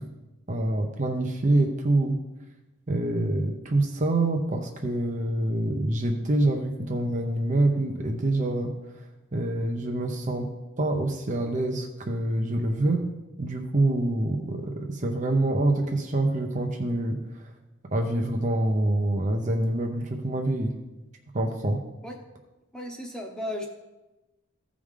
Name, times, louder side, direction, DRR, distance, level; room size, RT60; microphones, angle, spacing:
voice 1, 0.5-2.2 2.9-9.1 9.3-10.5 10.8-13.1 13.4-17.4 17.9-20.7 21.3-21.8, right 2 dB, 35° right, 3 dB, 0.7 m, -26 dB
voice 2, 22.7-23.7, left 1 dB, 5° left, 1 dB, 0.9 m, -35 dB
14.5 x 4.9 x 3.7 m, 1.1 s
head